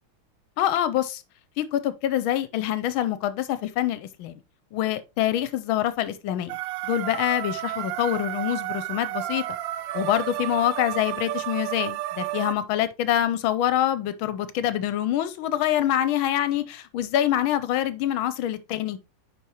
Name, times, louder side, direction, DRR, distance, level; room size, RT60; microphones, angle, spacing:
voice 1, 0.6-1.2 1.6-4.3 4.7-6.6 6.8-9.4 9.9-19.0, left 11 dB, 80° left, 1.4 m, -25 dB
sound 1, 6.5-12.5, right 15 dB, 75° right, 1.1 m, -32 dB
10.0 x 4.6 x 2.9 m
omnidirectional pair, 2.3 m